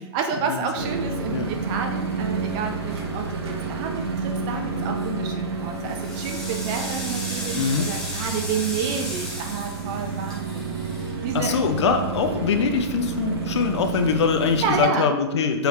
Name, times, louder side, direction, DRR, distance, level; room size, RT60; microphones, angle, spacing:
voice 1, 0.1-10.7 11.2-11.5 14.6-15.1, right 6 dB, 30° right, 4 dB, 0.4 m, -29 dB
sound 1, 0.8-14.8, right 4 dB, 70° right, 0.9 m, -30 dB
sound 2, 4.8-5.2 5.7-12.0, left 1 dB, 5° left, 1.0 m, -35 dB
voice 2, 7.5-7.9 11.3-15.7, left 5 dB, 85° left, 5 dB, 0.5 m, -23 dB
3.7 x 3.1 x 3.2 m, 1.0 s
hypercardioid pair, 140°, 14 cm